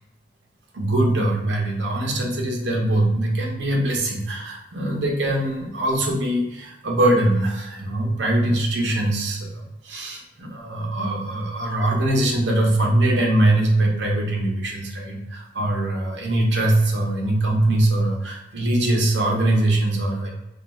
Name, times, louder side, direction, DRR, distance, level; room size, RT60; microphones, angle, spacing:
voice 1, 0.7-20.3, right 1 dB, 75° right, -1 dB, 0.7 m, -22 dB
2.5 x 2.2 x 3.1 m, 0.95 s
head